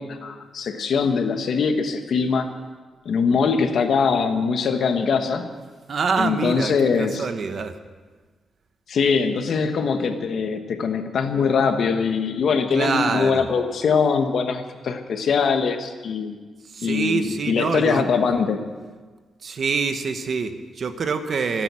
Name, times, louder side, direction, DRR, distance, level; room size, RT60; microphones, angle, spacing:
voice 1, 0.0-2.5 3.0-5.5 6.2-7.2 8.9-16.4 16.8-18.6, left 5 dB, 60° left, 6 dB, 1.5 m, -22 dB
voice 2, 5.9-7.7 12.7-13.4 16.6-18.1 19.4-21.6, right 5 dB, 50° right, 8 dB, 1.2 m, -25 dB
25.0 x 9.1 x 6.3 m, 1.4 s
cardioid pair, 130°, 0 cm